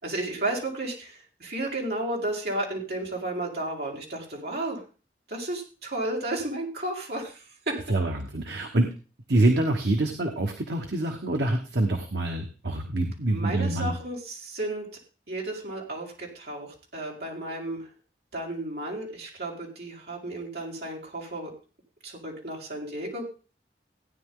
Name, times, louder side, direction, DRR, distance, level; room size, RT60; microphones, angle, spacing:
voice 1, 0.0-4.8 5.3-7.8 13.3-14.9 15.3-17.9 18.3-21.5 22.0-23.3, right 1 dB, 60° right, -2 dB, 4.5 m, -33 dB
voice 2, 7.9-8.9 9.3-13.9, right 2 dB, 75° right, 3 dB, 1.2 m, -25 dB
16.5 x 9.9 x 3.8 m, 0.35 s
head